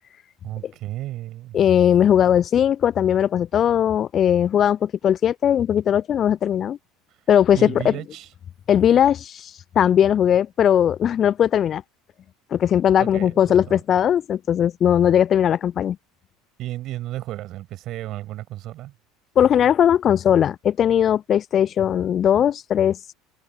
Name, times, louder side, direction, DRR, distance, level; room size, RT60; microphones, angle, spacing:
voice 1, 0.4-1.6 7.5-8.3 13.0-13.8 16.6-18.9, right 15 dB, 45° right, 7.3 m, -33 dB
voice 2, 1.5-6.8 7.3-7.9 8.7-11.8 12.5-16.0 19.4-23.1, left 9 dB, 35° left, 0.7 m, -19 dB
figure-of-eight pair, 70°, 0 cm